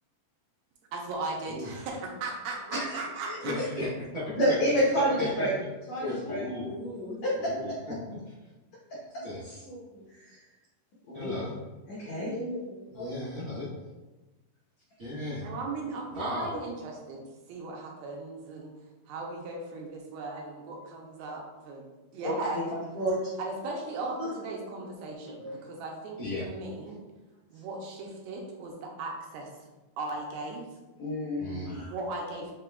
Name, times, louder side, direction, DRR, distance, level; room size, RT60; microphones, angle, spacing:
voice 1, 0.9-3.5 15.4-17.2 17.5-18.7 19.1-21.9 22.1-22.7 23.4-27.0 27.5-29.5 30.0-30.7 31.9-32.6, right 3 dB, 80° right, 0 dB, 2.5 m, -37 dB
voice 2, 2.9-3.4 4.4-5.5 5.9-7.5 9.1-9.2 9.6-10.4 11.1-11.3 11.9-13.1 22.2-22.6 23.0-23.3 24.2-24.3 25.2-25.6 31.0-31.9, equal, 80° left, -6 dB, 1.5 m, -30 dB
voice 3, 3.4-4.3 4.9-5.6 6.0-6.7 7.4-8.4 9.2-9.6 11.1-11.5 12.9-13.7 15.0-15.5 16.1-16.5 26.2-26.5 31.4-31.8, left 1 dB, 55° right, -12 dB, 1.2 m, -35 dB
6.4 x 3.7 x 2.3 m, 1.1 s
omnidirectional pair, 4.5 m